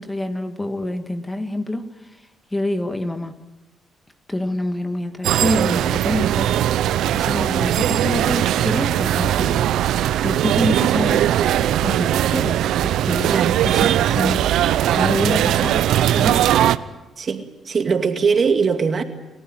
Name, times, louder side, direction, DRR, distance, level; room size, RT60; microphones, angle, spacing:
voice 1, 0.0-2.2 2.5-3.4 4.3-6.5 7.1-9.7 10.2-11.2 11.8-14.5 14.9-15.9 16.2-16.5, left 1 dB, 15° left, 7 dB, 2.0 m, -26 dB
sound 1, 5.2-16.8, right 11 dB, 80° right, 0.7 m, -19 dB
voice 2, 17.2-19.0, right 5 dB, 45° right, 6 dB, 2.3 m, -21 dB
29.5 x 14.5 x 9.2 m, 1.1 s
cardioid pair, 90°, 0 cm